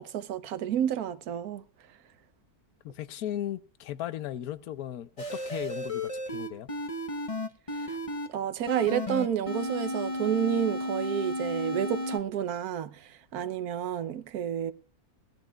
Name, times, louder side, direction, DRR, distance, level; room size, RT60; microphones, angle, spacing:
voice 1, 0.0-1.6 7.7-8.0 8.3-14.7, right 9 dB, 80° right, 1.3 m, -30 dB
voice 2, 2.8-6.7, left 11 dB, 75° left, 1.2 m, -36 dB
sound 1, 5.2-8.3 8.7-12.2, left 1 dB, 25° left, 0.9 m, -33 dB
19.5 x 13.0 x 2.3 m
omnidirectional pair, 1.6 m